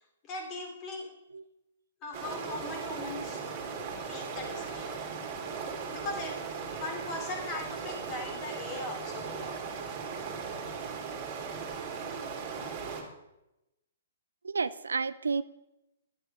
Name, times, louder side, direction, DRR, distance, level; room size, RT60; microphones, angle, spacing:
voice 1, 0.2-1.1 2.0-3.4 4.1-5.0 5.9-6.4 6.7-9.6, left 2 dB, 25° left, 3 dB, 2.7 m, -39 dB
sound 1, 2.1-13.0, right 5 dB, 35° right, 2.5 m, -38 dB
voice 2, 14.4-15.4, right 5 dB, 65° right, 16 dB, 0.4 m, -31 dB
10.5 x 10.5 x 5.2 m, 0.91 s
figure-of-eight pair, 115°, 0 cm